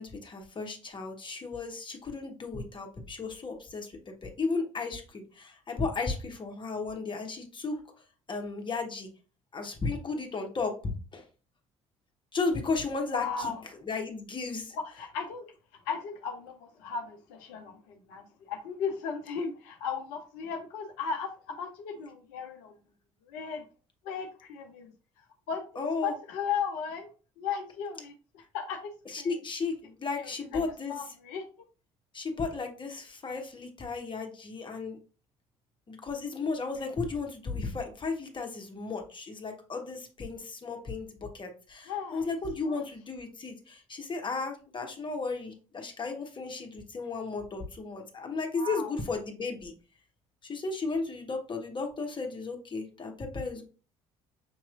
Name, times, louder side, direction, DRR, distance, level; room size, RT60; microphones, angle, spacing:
voice 1, 0.0-7.8 8.3-9.1 9.5-11.2 12.3-13.5 13.9-14.7 25.8-26.1 29.1-31.0 32.1-35.0 35.9-49.7 50.4-53.6, left 4 dB, 30° left, 4 dB, 1.2 m, -34 dB
voice 2, 13.1-13.6 14.7-15.5 15.7-22.7 23.2-23.6 24.0-27.1 27.4-28.8 29.2-29.4 30.2-30.6 30.9-31.4 41.9-42.8 48.5-48.9, left 6 dB, 70° left, 4 dB, 0.6 m, -36 dB
6.3 x 2.9 x 2.5 m, 0.36 s
hypercardioid pair, 55°, 16 cm